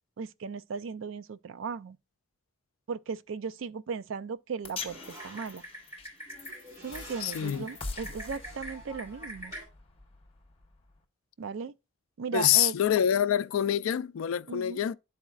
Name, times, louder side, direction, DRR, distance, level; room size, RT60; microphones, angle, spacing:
voice 1, 0.2-2.0 2.9-5.6 6.8-9.5 11.4-11.7 12.2-12.8 14.5-14.8, right 5 dB, 70° right, 0.4 m, -37 dB
sound 1, 4.6-11.0, left 4 dB, 25° left, 0.9 m, -44 dB
Typing, 4.9-9.6, equal, 15° right, 4.6 m, -44 dB
voice 2, 7.2-7.7 12.3-15.0, left 10 dB, 80° left, 0.3 m, -26 dB
12.0 x 4.2 x 2.4 m
head